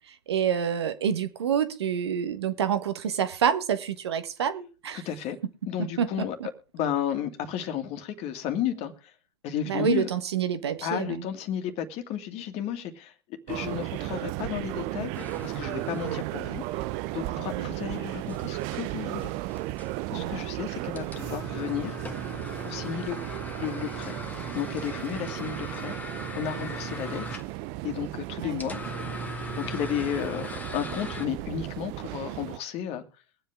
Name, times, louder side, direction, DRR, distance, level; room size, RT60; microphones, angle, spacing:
voice 1, 0.1-5.0 6.0-6.2 9.7-11.2 16.0-16.3 17.5-17.7 20.1-20.4 28.4-28.6, right 8 dB, 85° right, 1.4 m, -28 dB
voice 2, 4.9-5.4 5.7-6.4 6.7-9.1 9.4-10.1 10.8-13.1 13.5-15.1 15.4-16.8 17.1-19.3 20.1-22.0 22.6-24.2 24.5-27.4 27.8-28.8 29.5-30.5 30.7-33.0, left 9 dB, 50° left, 2.2 m, -33 dB
sound 1, 13.5-32.6, right 18 dB, 55° right, 0.6 m, -35 dB
sound 2, 15.1-31.3, left 2 dB, 10° left, 1.7 m, -41 dB
23.0 x 7.9 x 3.6 m
hypercardioid pair, 90°, 13 cm